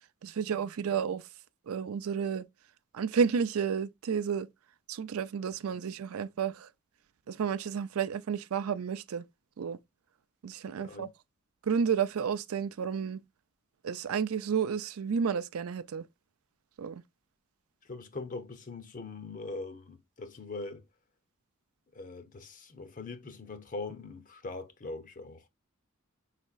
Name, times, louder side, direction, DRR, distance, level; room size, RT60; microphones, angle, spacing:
voice 1, 0.2-1.2 1.7-2.4 2.9-4.5 4.9-6.7 7.3-9.2 9.6-9.8 10.4-11.1 11.6-13.2 13.8-16.0 16.8-17.0, right 6 dB, 75° right, 0.4 m, -31 dB
voice 2, 10.8-11.1 17.8-20.8 21.9-25.5, left 3 dB, 40° left, 0.7 m, -41 dB
5.4 x 4.1 x 2.4 m
head